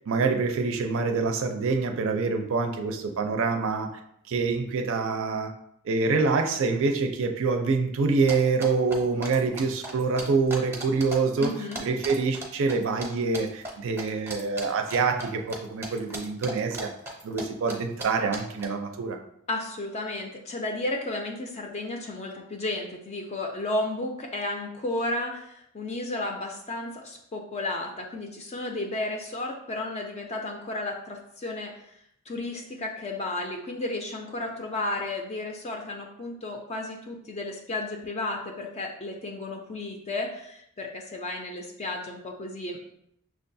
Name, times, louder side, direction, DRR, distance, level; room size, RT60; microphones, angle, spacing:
voice 1, 0.1-3.9 4.3-5.5 5.8-11.5 11.8-16.9 17.2-19.2, right 4 dB, 60° right, 5 dB, 0.5 m, -26 dB
sound 1, 8.3-11.2 11.4-13.1 13.3-13.7 14.0-15.6 15.8-17.4 17.7-17.8 18.0-18.1 18.3-18.6, right 1 dB, 10° right, 0.6 m, -36 dB
voice 2, 11.4-11.8 19.5-32.0 32.3-42.8, left 2 dB, 30° left, 1 dB, 0.4 m, -33 dB
6.0 x 2.3 x 2.6 m, 0.75 s
head